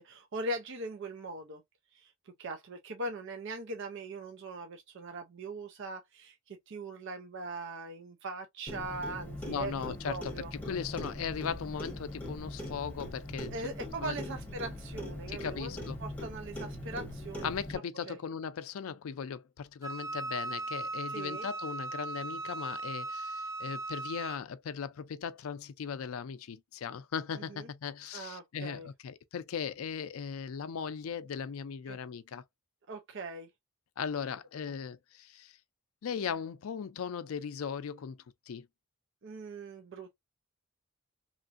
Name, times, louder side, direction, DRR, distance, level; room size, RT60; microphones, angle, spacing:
voice 1, 0.0-1.6 1.9-2.1 2.4-10.5 13.5-17.6 18.1-18.2 21.1-21.5 27.3-27.7 28.1-28.9 31.9-32.0 32.9-33.5 39.2-40.2, right 2 dB, 60° right, 0.5 m, -40 dB
Clock, 8.7-17.8, left 1 dB, 5° left, 1.1 m, -41 dB
voice 2, 9.4-10.3 10.7-13.7 14.0-14.2 15.3-16.0 17.4-32.4 34.0-35.5 36.0-38.2 38.5-38.7, left 7 dB, 75° left, 0.4 m, -38 dB
Wind instrument woodwind instrument, 19.8-24.4, right 3 dB, 15° right, 0.7 m, -38 dB
3.1 x 2.5 x 2.4 m
head